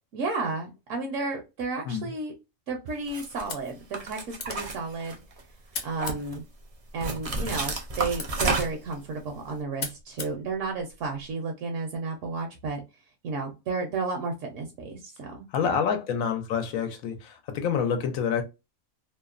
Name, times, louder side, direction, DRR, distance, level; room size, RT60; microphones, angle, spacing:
voice 1, 0.1-2.3 2.7-5.2 5.8-6.4 6.9-12.8 13.2-15.7, right 3 dB, 70° right, 1.0 m, -32 dB
sound 1, 3.1-3.4 3.9-5.4 5.8-6.4 7.0-8.9, right 3 dB, 50° right, 0.4 m, -30 dB
sound 2, 3.3-11.3, left 4 dB, 50° left, 0.7 m, -43 dB
voice 2, 15.5-18.4, left 7 dB, 90° left, 1.1 m, -27 dB
2.8 x 2.0 x 2.3 m
omnidirectional pair, 1.4 m